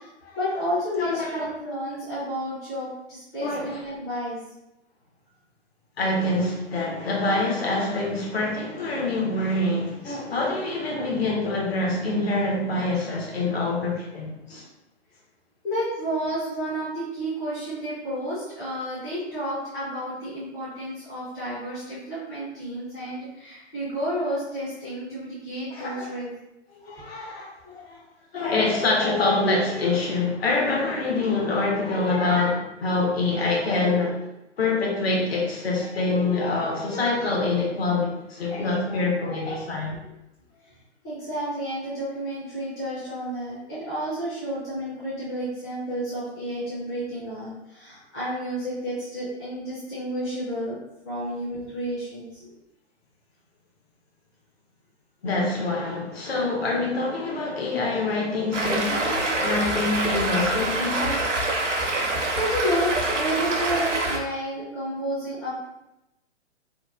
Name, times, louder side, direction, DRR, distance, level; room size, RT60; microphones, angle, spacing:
voice 1, 0.3-4.4 14.5-14.6 15.6-26.3 39.9-40.1 41.0-50.8 51.0-52.5 61.8-65.7, equal, 15° left, -12 dB, 0.4 m, -31 dB
voice 2, 1.0-1.5 3.4-3.8 6.0-14.6 25.7-26.1 26.7-28.0 28.3-34.2 34.6-39.9 55.2-61.3, left 2 dB, 60° left, -2 dB, 0.8 m, -25 dB
Stream, 58.5-64.2, right 2 dB, 80° right, 0.7 m, -26 dB
2.9 x 2.1 x 2.4 m, 0.91 s
figure-of-eight pair, 125°, 36 cm